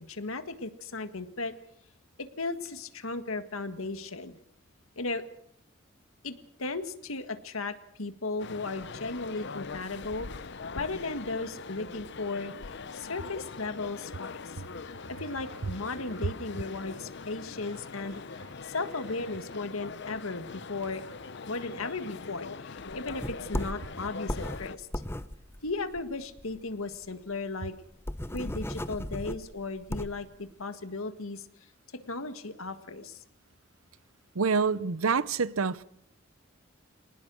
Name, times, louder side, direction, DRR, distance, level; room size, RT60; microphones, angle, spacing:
voice 1, 0.1-1.5 2.4-4.4 5.0-5.2 6.2-6.3 6.6-10.3 10.7-12.5 12.9-14.4 14.8-21.0 21.5-24.9 25.6-27.7 28.3-31.4 32.0-33.2, left 3 dB, 80° left, 1.8 m, -36 dB
sound 1, 8.4-24.8, left 4 dB, 55° left, 0.8 m, -42 dB
sound 2, 22.9-26.6 26.9-27.0 27.3-27.4 27.7-30.3, left 1 dB, 10° left, 0.8 m, -36 dB
voice 2, 34.3-35.8, right 5 dB, 85° right, 0.8 m, -26 dB
25.5 x 19.5 x 6.3 m
head